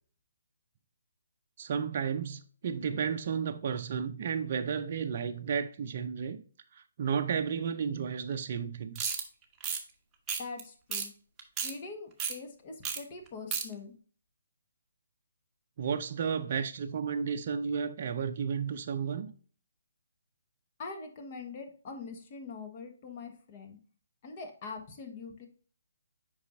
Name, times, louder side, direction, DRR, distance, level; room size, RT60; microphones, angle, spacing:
voice 1, 1.6-6.4 6.7-9.1 15.8-19.3, right 7 dB, 40° right, 0.5 m, -33 dB
sound 1, 9.0-9.2 9.6-9.8 10.3-10.6 10.9-11.1 11.4-11.7 12.2-12.3 12.8-13.0 13.3-13.6, right 6 dB, 15° right, 1.0 m, -32 dB
voice 2, 10.4-11.1 11.6-13.9 20.8-23.8 24.2-25.5, left 4 dB, 35° left, 1.3 m, -43 dB
8.1 x 5.4 x 2.6 m
figure-of-eight pair, 140°, 0 cm